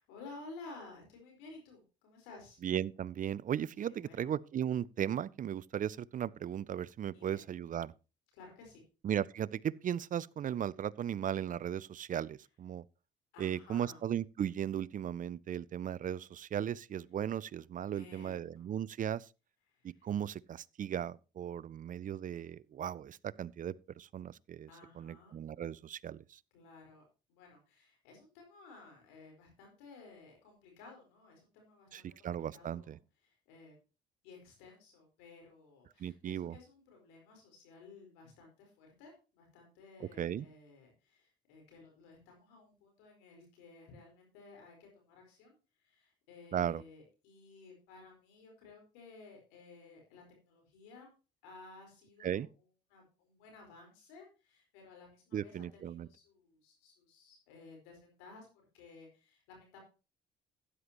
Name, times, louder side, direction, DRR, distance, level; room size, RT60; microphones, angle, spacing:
voice 1, 0.1-2.6 3.8-4.3 7.1-7.4 8.3-8.8 13.3-14.0 17.9-18.6 19.7-20.1 24.7-25.4 26.5-33.0 33.2-33.8 34.2-51.1 51.4-52.5 52.9-58.5 58.7-59.8, left 3 dB, 85° left, 4.6 m, -55 dB
voice 2, 2.6-7.9 9.0-12.8 13.4-19.3 20.0-24.7 25.0-26.4 31.9-33.0 36.0-36.6 40.2-40.5 46.5-46.8 52.2-52.5 55.3-56.1, right 9 dB, 45° right, 0.5 m, -36 dB
12.5 x 9.8 x 3.0 m
supercardioid pair, 65°, 19 cm